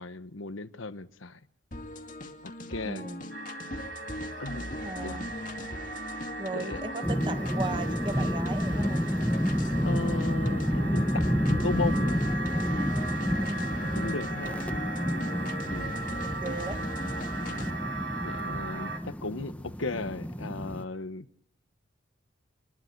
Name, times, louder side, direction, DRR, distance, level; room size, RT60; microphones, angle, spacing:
voice 1, 0.0-1.4 2.4-3.1 4.4-4.8 5.0-5.2 6.5-6.8 9.8-12.2 13.9-14.6 15.7-16.0 17.4-17.8 18.2-21.3, left 3 dB, 90° left, 1.2 m, -36 dB
sound 1, 1.7-17.7, left 1 dB, 40° left, 2.4 m, -39 dB
voice 2, 2.8-3.3 4.8-5.3 6.4-9.1 13.5-14.0 14.4-14.6 15.4-16.8, right 2 dB, 25° right, 1.4 m, -38 dB
sound 2, 3.3-19.0, right 3 dB, 60° right, 3.4 m, -39 dB
sound 3, 7.0-20.8, equal, 5° left, 1.0 m, -30 dB
26.5 x 21.5 x 4.6 m
head